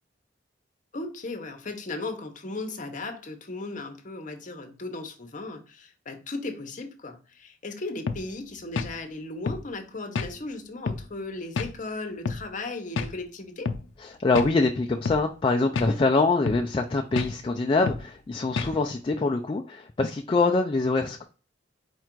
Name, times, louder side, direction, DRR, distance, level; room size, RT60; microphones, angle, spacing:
voice 1, 0.9-13.7, left 2 dB, 40° left, 0.8 m, -36 dB
sound 1, 8.1-8.3 8.8-8.9 9.5-9.6 10.2-10.3 10.9-11.1 11.6-11.7 12.3-12.4 13.0-13.2 13.7-13.8 14.4-14.5 15.1-15.2 15.8-16.0 16.5-16.7 17.2-17.3 17.9-18.1 18.6-18.8, left 4 dB, 85° left, 0.5 m, -29 dB
voice 2, 14.0-21.2, left 3 dB, 25° left, 0.3 m, -24 dB
4.4 x 2.4 x 4.4 m
head